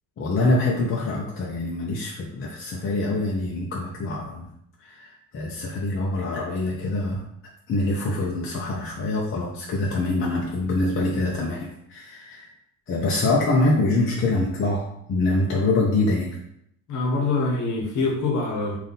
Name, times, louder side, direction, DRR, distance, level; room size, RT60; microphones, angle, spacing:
voice 1, 0.2-4.5 4.8-7.2 7.7-12.5 12.9-16.4, left 2 dB, 30° left, -3 dB, 0.8 m, -25 dB
voice 2, 16.9-18.8, left 3 dB, 45° left, 1 dB, 1.2 m, -24 dB
3.5 x 2.7 x 4.1 m, 0.72 s
supercardioid pair, 95°, 40 cm